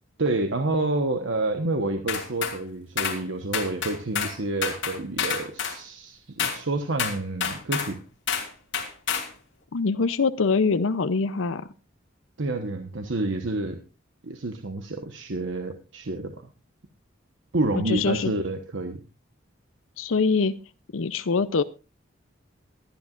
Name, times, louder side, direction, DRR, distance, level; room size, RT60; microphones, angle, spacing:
voice 1, 0.2-8.0 12.4-13.8 14.2-16.3 17.5-19.0, right 2 dB, 70° right, 6 dB, 1.1 m, -28 dB
sound 1, 2.1-2.6 3.0-3.2 3.5-4.4 4.6-5.8 6.4-6.6 7.0-7.9 8.3-8.5 8.7-9.3, left 7 dB, 65° left, 2.9 m, -28 dB
voice 2, 9.7-11.7 17.9-18.3 20.0-20.6 20.9-21.6, left 4 dB, 80° left, 12 dB, 0.6 m, -24 dB
23.0 x 10.5 x 2.5 m, 0.30 s
head